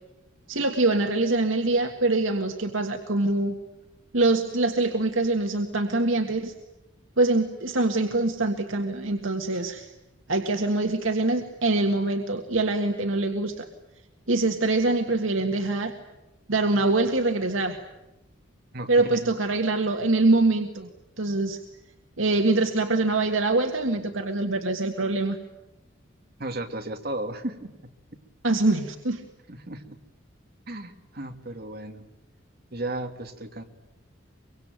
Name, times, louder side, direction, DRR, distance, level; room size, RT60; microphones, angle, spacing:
voice 1, 0.5-3.6 4.1-6.5 7.2-9.9 10.3-13.7 14.3-15.9 16.5-17.8 18.9-20.9 21.2-21.6 22.2-25.4 28.4-29.2, right 2 dB, 85° right, 4 dB, 1.8 m, -24 dB
voice 2, 18.7-19.3 26.4-27.9 29.5-30.0 30.7-32.0 32.7-33.6, right 1 dB, 50° right, 6 dB, 2.2 m, -35 dB
24.0 x 24.0 x 9.2 m, 0.99 s
head